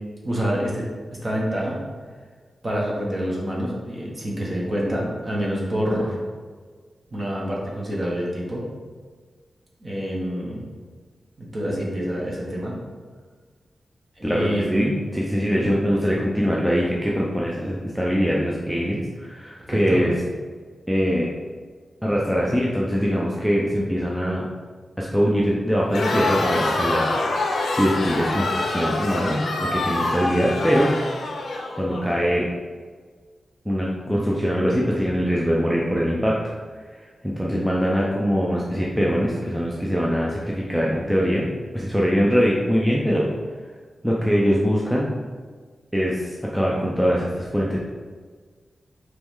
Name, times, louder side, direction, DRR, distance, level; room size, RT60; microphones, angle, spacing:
voice 1, 0.2-0.9 1.2-1.8 2.6-6.2 7.1-8.6 9.8-10.6 11.4-12.7 14.2-15.0 15.4-15.7 19.7-20.0, equal, 30° right, -4 dB, 1.1 m, -27 dB
voice 2, 14.2-20.1 20.9-21.3 22.0-24.5 25.0-27.5 27.8-30.9 31.8-32.4 33.7-36.4 36.9-41.5 41.7-43.3 44.0-45.1 45.9-47.8, equal, ahead, -4 dB, 0.5 m, -22 dB
Crowd, 25.9-32.1, left 2 dB, 80° left, 0.5 m, -25 dB
4.7 x 3.1 x 3.6 m, 1.5 s
wide cardioid pair, 145°, 0 cm